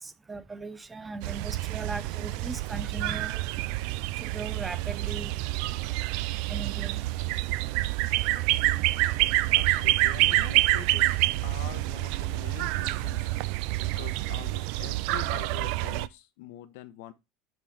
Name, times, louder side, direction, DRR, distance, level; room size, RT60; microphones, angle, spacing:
voice 1, 0.0-3.4 4.2-5.4 6.5-7.1, right 3 dB, 15° right, 0.6 m, -38 dB
sound 1, 1.2-16.1, right 17 dB, 65° right, 0.4 m, -27 dB
voice 2, 9.5-13.3 13.8-17.1, left 13 dB, 80° left, 1.1 m, -44 dB
12.0 x 4.0 x 4.9 m
supercardioid pair, 145°, 0 cm